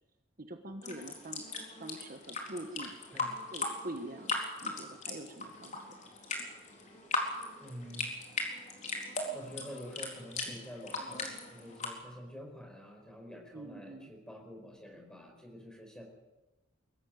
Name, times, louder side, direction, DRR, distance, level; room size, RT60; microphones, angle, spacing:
voice 1, 0.4-1.4 1.8-3.2 3.5-5.8 13.5-14.1, right 1 dB, 45° right, 6 dB, 1.3 m, -45 dB
sound 1, 0.8-11.9, left 3 dB, 35° left, 4.0 m, -39 dB
voice 2, 7.6-8.4 9.3-16.0, equal, 5° left, 1 dB, 4.7 m, -48 dB
23.0 x 14.0 x 9.3 m, 1.1 s
head